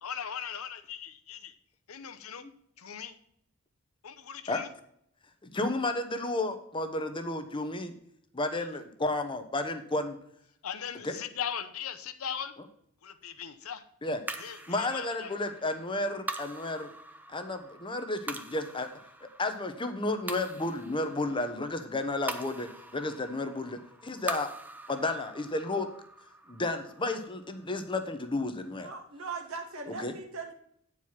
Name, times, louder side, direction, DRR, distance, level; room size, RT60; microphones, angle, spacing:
voice 1, 0.0-1.5 1.9-2.4 2.8-3.1 4.0-4.7 8.5-8.7 10.6-12.5 13.0-13.8 14.4-15.3, left 8 dB, 85° left, 10 dB, 0.8 m, -39 dB
voice 2, 5.4-7.9 8.3-10.2 11.0-11.2 14.0-14.2 14.7-16.9 17.3-18.9 19.4-24.5 24.9-25.9 26.5-28.9 30.0-30.1, left 2 dB, 25° left, 8 dB, 0.9 m, -32 dB
sound 1, 14.3-28.8, right 2 dB, 10° right, 0.5 m, -44 dB
voice 3, 28.8-30.5, right 4 dB, 80° right, 3 dB, 1.6 m, -39 dB
9.0 x 4.8 x 5.6 m, 0.70 s
head